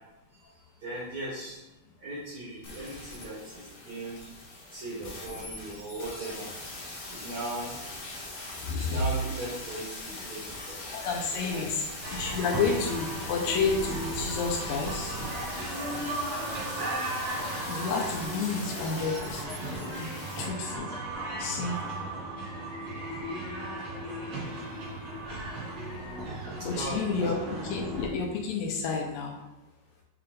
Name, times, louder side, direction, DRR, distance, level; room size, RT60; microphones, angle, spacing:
voice 1, 0.8-1.6 2.0-4.2 4.7-6.5 7.1-7.7 8.7-10.9 11.3-11.7 15.9-16.3 19.7-19.8 21.5-21.7 24.1-25.3 25.8-26.1 26.6-27.3, right 1 dB, 75° right, -8 dB, 1.1 m, -39 dB
sound 1, 2.6-20.5 20.8-20.9, left 2 dB, 60° left, 1.7 m, -41 dB
voice 2, 8.7-9.0 10.9-11.8 12.1-15.2 17.7-19.4 19.8-20.1 20.4-20.9 21.4-21.8 22.7-23.2 25.8-26.2 26.5-27.4 27.6-29.3, left 5 dB, 80° left, 1 dB, 2.1 m, -30 dB
sound 2, 12.0-28.1, right 1 dB, 55° right, 3.1 m, -36 dB
7.6 x 3.3 x 3.8 m, 1.0 s
omnidirectional pair, 4.7 m